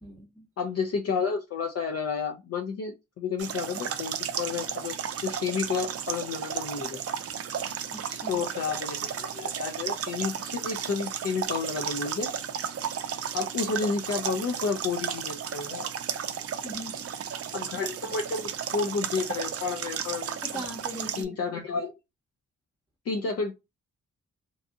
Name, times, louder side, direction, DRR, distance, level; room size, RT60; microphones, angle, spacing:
voice 1, 0.0-0.5 7.9-8.4 16.6-17.1 20.4-21.4, right 1 dB, 5° right, 0.8 m, -40 dB
voice 2, 0.6-4.9 5.2-7.0 8.3-12.3 13.3-15.9 17.5-20.4 21.2-21.9 23.1-23.5, left 5 dB, 50° left, 0.5 m, -31 dB
sound 1, 3.4-21.2, right 8 dB, 50° right, 0.4 m, -34 dB
2.6 x 2.3 x 2.5 m
cardioid pair, 55°, 31 cm